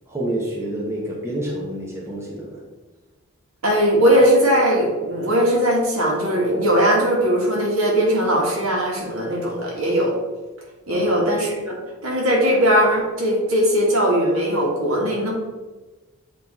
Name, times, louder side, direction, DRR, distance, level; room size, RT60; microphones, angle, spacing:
voice 1, 0.1-2.6 10.9-11.1, right 1 dB, 10° right, -4 dB, 0.9 m, -28 dB
voice 2, 3.6-10.1 10.9-15.3, equal, 65° right, -2 dB, 1.7 m, -19 dB
7.6 x 3.1 x 4.2 m, 1.2 s
head